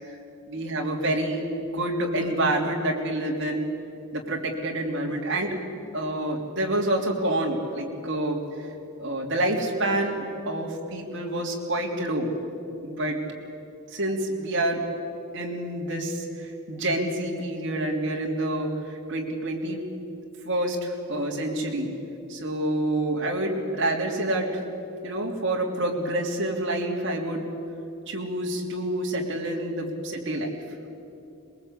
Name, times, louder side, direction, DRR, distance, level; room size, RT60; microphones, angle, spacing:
voice 1, 0.5-3.7 4.1-5.5 5.9-8.4 9.0-12.3 12.8-13.2 13.9-14.8 15.3-19.8 20.4-21.9 22.3-24.6 25.0-27.5 28.1-30.6, right 1 dB, 55° right, -1 dB, 3.2 m, -27 dB
23.0 x 21.0 x 8.4 m, 2.7 s
head